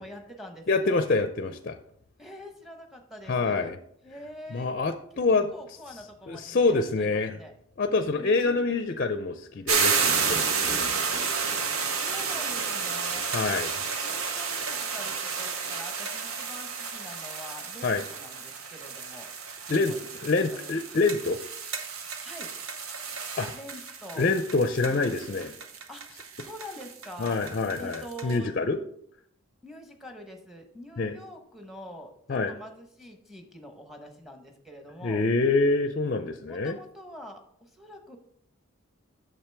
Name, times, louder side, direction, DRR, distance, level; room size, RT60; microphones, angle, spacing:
voice 1, 0.0-1.0 2.2-3.7 4.0-4.7 5.1-5.2 5.5-7.5 8.2-8.9 11.1-11.3 12.0-13.3 14.0-19.3 19.7-20.7 22.2-22.5 23.5-24.3 24.9-25.2 25.9-27.4 27.8-28.5 29.6-35.2 36.5-38.2, equal, ahead, 4 dB, 0.9 m, -45 dB
voice 2, 0.7-1.8 3.3-3.8 4.5-5.5 6.3-7.4 7.8-11.0 13.3-13.7 17.8-18.0 19.7-19.9 20.2-21.4 23.4-23.5 24.2-25.5 27.2-28.8 31.0-31.2 32.3-32.5 35.0-36.8, left 3 dB, 40° left, 9 dB, 0.4 m, -26 dB
sound 1, 9.7-28.4, right 5 dB, 75° right, 0.9 m, -31 dB
8.8 x 6.9 x 3.4 m, 0.68 s
head